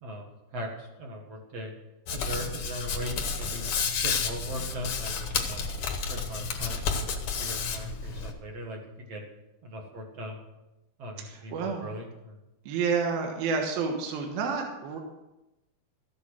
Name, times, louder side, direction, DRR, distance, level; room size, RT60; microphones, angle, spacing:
voice 1, 0.0-1.7 2.1-3.6 4.0-5.6 6.0-9.2 9.6-10.5 11.0-12.4, equal, 50° right, 1 dB, 2.2 m, -39 dB
Hands, 2.1-8.3, left 5 dB, 70° left, 1.3 m, -31 dB
voice 2, 11.3-11.9 12.7-15.0, right 5 dB, 75° right, 2 dB, 3.1 m, -29 dB
14.0 x 8.4 x 6.3 m, 0.98 s
omnidirectional pair, 4.5 m